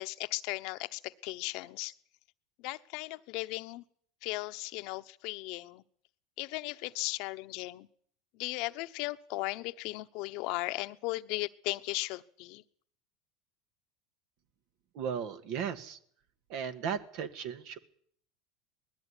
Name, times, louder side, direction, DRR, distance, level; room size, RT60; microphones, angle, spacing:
voice 1, 0.0-1.9 2.6-3.8 4.2-5.8 6.4-7.9 8.3-12.6, left 21 dB, 65° left, 11 dB, 1.0 m, -37 dB
voice 2, 14.9-16.0 16.5-17.8, right 7 dB, 60° right, 10 dB, 2.1 m, -36 dB
20.0 x 13.5 x 9.9 m, 0.62 s
supercardioid pair, 110°, 0 cm